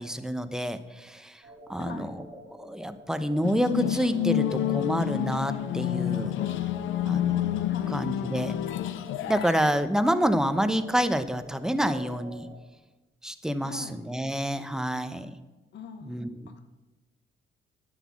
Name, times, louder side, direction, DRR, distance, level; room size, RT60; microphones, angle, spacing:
voice 1, 0.0-1.4 1.7-6.3 7.0-7.5 7.9-8.6 9.3-12.5 13.2-15.4 16.0-16.6, equal, 5° right, 10 dB, 0.8 m, -28 dB
sound 1, 1.4-12.6, right 1 dB, 45° right, 3.2 m, -47 dB
voice 2, 1.8-2.1 7.7-7.9 13.6-13.9 15.7-16.2 16.5-16.6, left 6 dB, 60° left, 9 dB, 1.0 m, -42 dB
sound 2, 3.4-9.7, left 12 dB, 80° left, 0.5 m, -29 dB
9.9 x 8.4 x 7.3 m, 1.1 s
cardioid pair, 90°, 20 cm